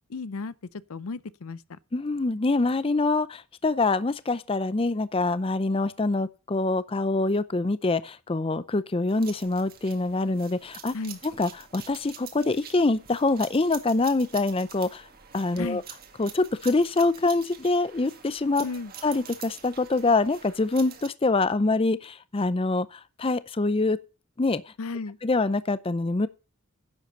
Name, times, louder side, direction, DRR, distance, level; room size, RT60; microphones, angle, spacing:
voice 1, 0.1-1.8 10.9-11.2 15.6-15.8 18.6-18.9 24.8-25.2, left 3 dB, 75° left, 0.6 m, -34 dB
voice 2, 1.9-11.0 11.4-15.1 15.3-15.8 16.2-18.7 19.0-24.0 24.4-24.6 25.2-26.3, left 3 dB, 25° left, 0.5 m, -25 dB
sound 1, 9.1-21.1, right 8 dB, 45° right, 1.9 m, -46 dB
10.5 x 7.6 x 5.5 m
head